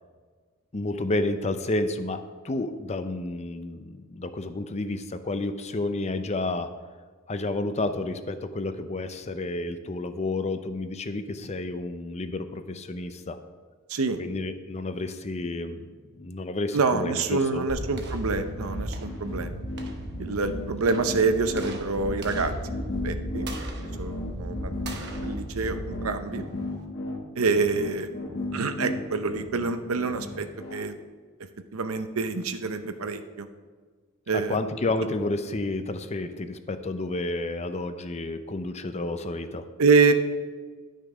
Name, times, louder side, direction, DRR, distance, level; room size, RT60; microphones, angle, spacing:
voice 1, 0.7-6.7 7.3-13.4 14.2-15.9 16.1-17.7 34.3-39.7, left 2 dB, 30° left, 9 dB, 0.6 m, -30 dB
voice 2, 16.7-19.5 20.2-22.5 23.0-23.5 24.0-24.7 25.2-26.5 27.4-28.1 28.5-30.9 31.7-33.5 34.3-34.6 39.8-40.1, right 4 dB, 85° right, 9 dB, 0.8 m, -26 dB
sound 1, 17.7-26.8, equal, 55° right, 1.1 m, -36 dB
sound 2, 18.3-30.8, left 2 dB, 65° left, 1.4 m, -36 dB
11.0 x 6.5 x 5.0 m, 1.5 s
head